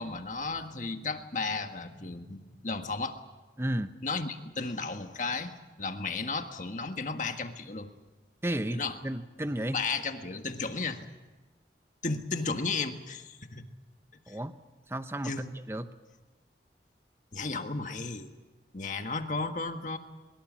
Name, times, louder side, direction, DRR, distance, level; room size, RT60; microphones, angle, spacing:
voice 1, 0.0-3.2 4.0-7.9 8.7-9.0 9.7-11.1 12.0-13.7 14.3-14.4 15.2-15.5 17.3-18.3 18.7-20.0, left 4 dB, 45° left, 6 dB, 1.6 m, -34 dB
voice 2, 3.6-3.9 8.4-9.8 14.3-14.5 14.9-15.9, right 1 dB, 15° right, 10 dB, 0.8 m, -33 dB
23.0 x 22.0 x 7.5 m, 1.2 s
head